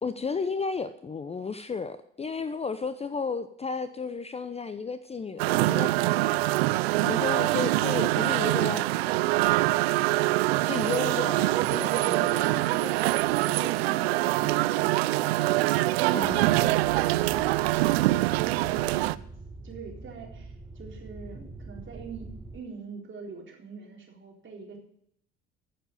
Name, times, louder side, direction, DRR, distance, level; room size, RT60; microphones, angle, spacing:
voice 1, 0.0-5.9 7.0-8.9 10.6-12.5 12.8-12.9 16.1-16.6, left 4 dB, 20° left, 12 dB, 0.7 m, -33 dB
sound 1, 5.4-19.2, right 18 dB, 75° right, 0.5 m, -24 dB
voice 2, 12.2-15.3 18.4-19.2 19.6-24.8, right 4 dB, 40° right, -1 dB, 4.0 m, -43 dB
sound 2, 16.2-22.6, right 2 dB, 15° right, 1.6 m, -44 dB
14.5 x 7.4 x 5.4 m, 0.69 s
hypercardioid pair, 60°, 31 cm